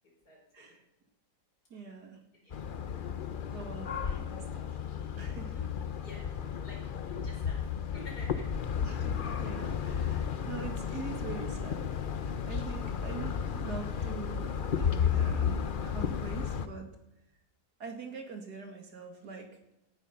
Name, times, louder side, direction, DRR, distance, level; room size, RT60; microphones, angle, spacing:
voice 1, 0.3-0.7 2.4-2.6 5.5-5.6 6.0-6.3 6.6-8.5, left 2 dB, 65° left, -2 dB, 5.9 m, -50 dB
voice 2, 1.7-2.2 3.5-4.8 5.2-5.5 8.8-12.0 12.4-16.9 17.8-19.5, right 5 dB, 70° right, 4 dB, 2.7 m, -44 dB
sound 1, 2.5-16.7, left 7 dB, 50° left, 0.6 m, -33 dB
17.0 x 10.5 x 5.8 m, 0.89 s
omnidirectional pair, 1.8 m